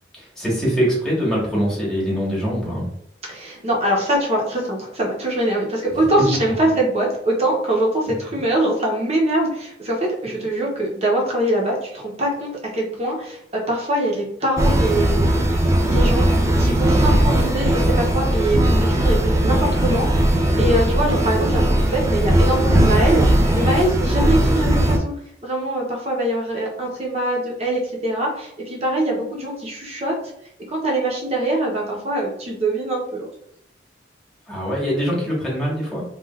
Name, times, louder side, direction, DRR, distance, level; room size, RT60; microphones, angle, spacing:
voice 1, 0.2-2.9 5.9-6.1 8.0-8.4 16.9-17.2 34.5-36.0, equal, 5° left, -6 dB, 1.3 m, -23 dB
voice 2, 3.3-15.2 15.8-16.2 16.6-25.1 25.4-30.1 30.7-33.3, right 1 dB, 35° right, -2 dB, 0.8 m, -23 dB
sound 1, 14.6-25.0, right 1 dB, 15° right, 0.3 m, -18 dB
3.3 x 2.5 x 2.3 m, 0.71 s
head